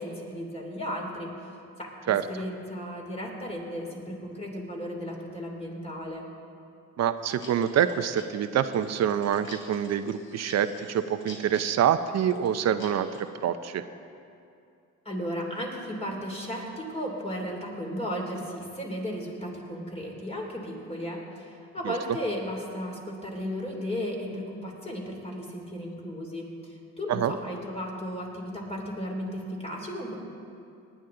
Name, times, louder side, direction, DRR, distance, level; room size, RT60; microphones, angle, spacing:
voice 1, 0.0-1.5 1.8-6.3 15.0-30.2, equal, 20° left, -1 dB, 3.1 m, -35 dB
voice 2, 7.0-13.8 21.8-21.9 27.1-27.3, right 9 dB, 60° right, 11 dB, 0.6 m, -26 dB
sound 1, 7.2-13.2, left 2 dB, 45° left, 2.7 m, -50 dB
19.0 x 10.5 x 3.9 m, 2.5 s
cardioid pair, 90°, 30 cm